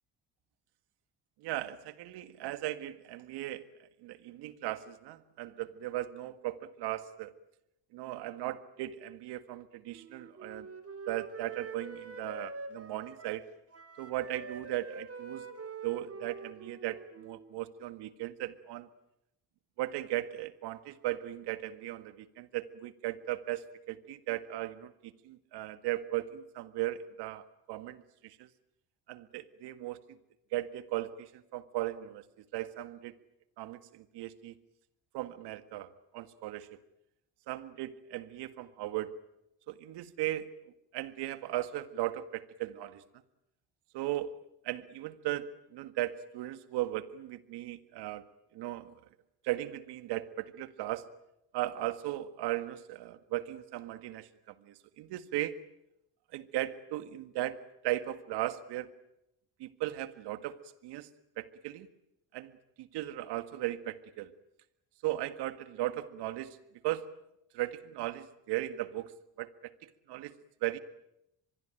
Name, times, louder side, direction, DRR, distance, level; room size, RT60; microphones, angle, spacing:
voice 1, 1.4-7.3 7.9-10.7 11.1-13.5 14.0-15.5 15.8-18.9 19.8-28.5 29.1-30.2 30.5-32.2 32.5-33.2 33.6-34.6 35.1-36.8 37.5-39.1 39.7-40.5 40.9-43.0 43.9-44.3 44.6-48.2 48.5-48.9 49.4-51.1 51.5-54.3 54.6-55.5 56.3-58.9 59.6-60.6 60.8-61.1 61.4-61.9 62.3-62.5 62.8-64.3 65.0-66.6 66.8-67.1 67.5-69.1 69.4-70.3 70.6-70.8, right 15 dB, 70° right, 13 dB, 1.8 m, -37 dB
Wind instrument woodwind instrument, 9.9-13.5 13.7-17.6, right 4 dB, 35° right, 3.5 m, -45 dB
24.5 x 21.5 x 9.0 m, 0.83 s
hypercardioid pair, 65°, 42 cm